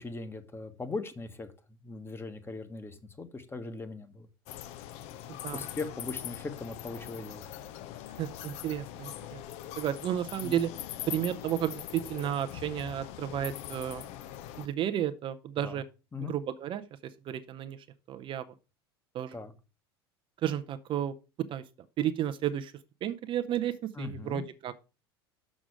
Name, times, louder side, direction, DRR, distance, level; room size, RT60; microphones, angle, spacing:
voice 1, 0.0-1.5 1.8-4.3 5.5-7.5 10.4-10.6 15.6-15.8 16.1-16.3 19.3-19.5 24.0-24.4, left 3 dB, 20° left, 8 dB, 1.2 m, -39 dB
sound 1, 4.5-14.7, left 12 dB, 55° left, 0.7 m, -42 dB
voice 2, 5.3-5.6 8.2-9.4 9.8-10.7 11.1-14.0 14.6-15.8 16.2-18.5 19.1-19.4 20.4-21.1 21.5-21.6 22.0-22.7 23.0-24.8, right 11 dB, 40° right, 10 dB, 0.6 m, -32 dB
6.4 x 6.1 x 4.7 m, 0.31 s
hypercardioid pair, 75°, 13 cm